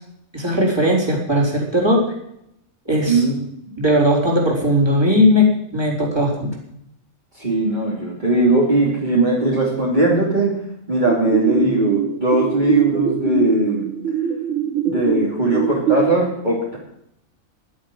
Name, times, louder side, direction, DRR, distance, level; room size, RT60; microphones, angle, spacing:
voice 1, 0.3-2.0 2.9-3.2 3.8-5.4 5.7-6.5, equal, 20° right, -2 dB, 4.2 m, -17 dB
voice 2, 3.1-3.4 7.3-10.6 10.9-13.9 14.8-16.8, right 2 dB, 35° right, -5 dB, 3.0 m, -19 dB
sound 1, 11.1-16.1, right 9 dB, 65° right, 1.5 m, -23 dB
11.5 x 11.0 x 7.8 m, 0.78 s
omnidirectional pair, 1.4 m